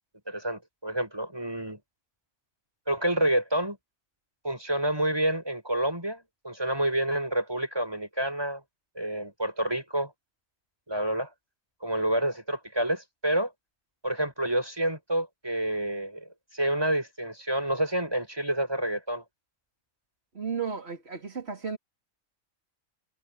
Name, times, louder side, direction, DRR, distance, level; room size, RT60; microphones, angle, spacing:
voice 1, 0.3-1.8 2.9-3.8 4.4-8.6 9.0-10.1 10.9-11.3 11.8-13.5 14.0-19.2, right 1 dB, 20° right, 7.9 m, -28 dB
voice 2, 20.3-21.8, right 6 dB, 50° right, 3.3 m, -33 dB
omnidirectional pair, 1.4 m